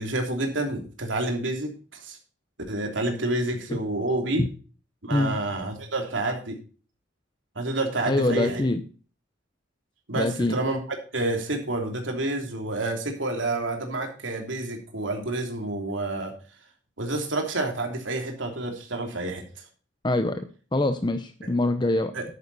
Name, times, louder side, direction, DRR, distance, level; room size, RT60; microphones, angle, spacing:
voice 1, 0.0-2.2 2.7-4.4 5.0-6.6 7.5-8.6 10.1-10.8 11.1-16.3 17.0-19.4 22.1-22.2, right 2 dB, 75° right, 3 dB, 3.1 m, -29 dB
voice 2, 8.1-8.8 10.1-10.6 20.0-20.5 20.7-22.1, left 2 dB, 25° left, 9 dB, 0.7 m, -24 dB
10.5 x 9.1 x 4.1 m, 0.37 s
head